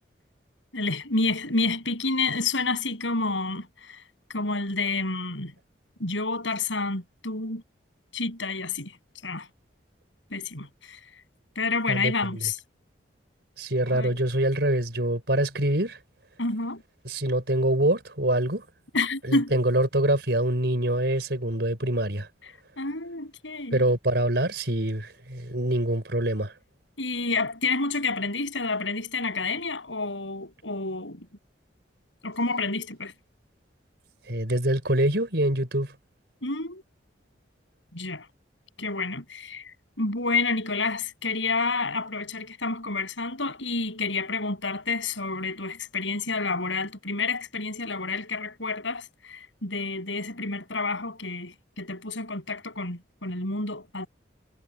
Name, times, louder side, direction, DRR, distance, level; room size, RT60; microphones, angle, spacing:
voice 1, 0.7-4.0 4.3-5.5 6.0-7.6 8.1-9.0 9.2-9.5 10.3-11.0 11.6-12.6 13.9-14.2 16.4-16.8 18.9-19.5 22.8-23.8 27.0-31.3 32.2-33.1 36.4-36.8 37.9-38.3 38.8-39.6 40.0-54.1, left 3 dB, 85° left, 7.5 m, -29 dB
voice 2, 11.9-12.5 13.6-16.0 17.0-18.7 19.2-22.3 23.7-26.5 34.3-36.0, right 1 dB, 60° right, 5.3 m, -25 dB
head